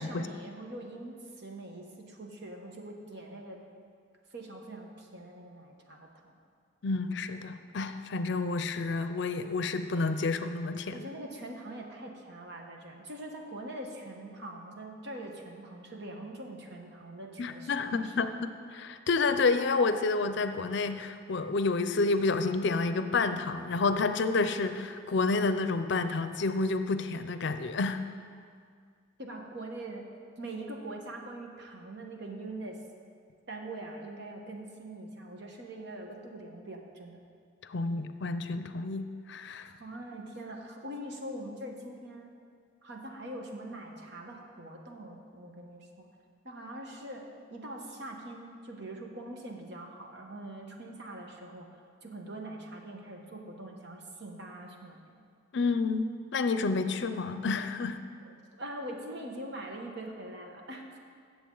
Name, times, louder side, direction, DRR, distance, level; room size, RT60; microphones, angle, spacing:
voice 1, 0.0-3.6 4.3-6.4 10.9-18.3 29.2-30.1 30.4-32.8 33.5-37.2 39.8-42.3 42.8-46.1 46.4-51.7 52.0-55.2 58.2-60.8, right 1 dB, 60° right, 1 dB, 1.2 m, -43 dB
voice 2, 6.8-11.1 17.4-28.0 37.7-39.7 55.5-58.0, left 3 dB, 65° left, 10 dB, 0.5 m, -29 dB
15.5 x 7.1 x 3.9 m, 2.1 s
head